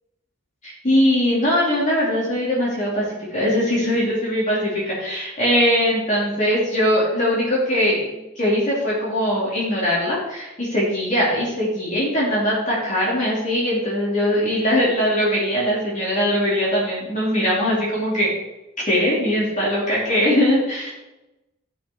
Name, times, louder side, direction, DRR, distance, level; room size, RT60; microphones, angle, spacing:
voice 1, 0.6-3.1 3.3-18.3 18.9-20.9, equal, 35° left, -6 dB, 3.4 m, -21 dB
14.0 x 6.1 x 4.7 m, 0.96 s
head